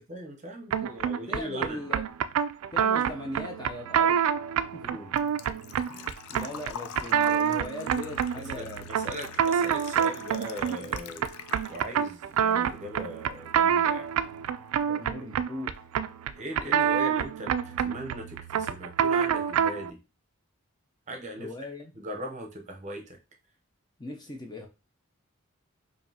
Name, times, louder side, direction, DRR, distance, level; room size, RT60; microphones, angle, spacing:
voice 1, 0.0-1.9 4.8-5.1 8.5-11.3 11.7-14.1 16.4-20.0 21.1-21.5 22.0-23.2, right 1 dB, 35° right, 2 dB, 0.7 m, -39 dB
sound 1, 0.7-19.9, right 8 dB, 85° right, 0.3 m, -27 dB
voice 2, 0.8-2.0 2.7-4.2 4.7-4.8 5.9-8.9 14.9-15.8 21.4-21.9 24.0-24.7, left 1 dB, 20° left, 3 dB, 0.5 m, -39 dB
Engine / Trickle dribble / Fill (with liquid), 4.2-12.1 12.5-13.5 13.8-13.9 15.8-15.9 16.0-16.4 16.7-16.8 17.1-17.2, left 8 dB, 85° left, 0.4 m, -44 dB
5.0 x 2.6 x 2.7 m, 0.29 s
head